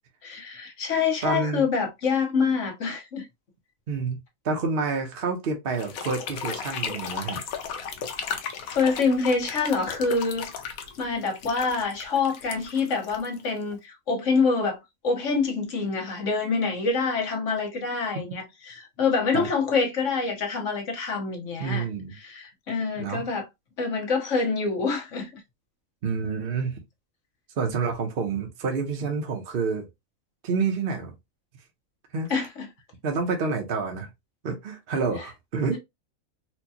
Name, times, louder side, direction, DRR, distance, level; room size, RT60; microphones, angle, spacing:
voice 1, 0.2-3.3 8.7-10.5 11.0-14.8 15.0-21.9 22.1-23.5 23.8-25.3 32.3-32.7, left 4 dB, 65° left, 1.4 m, -26 dB
voice 2, 1.2-1.7 3.9-4.2 4.4-7.4 19.3-19.5 21.6-22.2 23.0-23.3 26.0-26.8 27.6-29.8 30.4-31.1 32.1-32.3 33.0-34.1 34.4-35.8, right 4 dB, 50° right, 0.9 m, -28 dB
sound 1, 5.7-13.7, left 7 dB, 90° left, 1.1 m, -35 dB
4.4 x 2.3 x 2.8 m
omnidirectional pair, 1.4 m